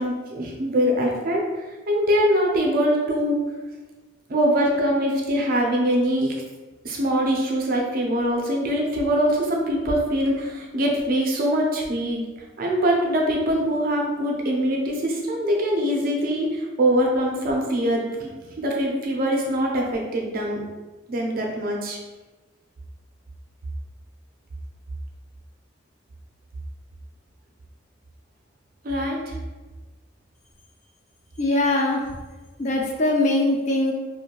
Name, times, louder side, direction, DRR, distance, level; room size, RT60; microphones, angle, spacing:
voice 1, 0.0-1.4 1.9-3.4 4.3-6.4 6.8-12.2 12.6-20.6 21.1-22.0 28.8-29.4, equal, 45° right, 0 dB, 0.5 m, -23 dB
voice 2, 31.4-32.1 32.6-33.9, left 2 dB, 35° left, 1 dB, 0.3 m, -21 dB
2.6 x 2.2 x 2.9 m, 1.2 s
head